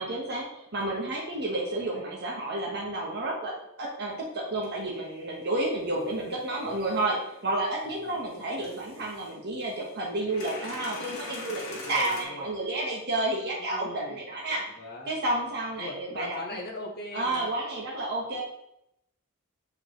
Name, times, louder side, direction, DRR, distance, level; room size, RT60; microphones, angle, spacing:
voice 1, 0.0-3.5 3.8-7.2 7.4-14.6 15.1-16.4 17.1-18.4, right 2 dB, 50° right, -3 dB, 1.3 m, -31 dB
voice 2, 1.6-2.0 5.8-6.8 7.9-9.1 11.7-12.5 13.6-15.1 15.8-17.5, left 1 dB, 50° left, -1 dB, 1.3 m, -42 dB
sound 1, 4.1-4.2 4.6-8.0 8.6-9.3 9.7-12.2, left 3 dB, 70° left, 1.4 m, -43 dB
7.3 x 4.8 x 3.1 m, 0.78 s
head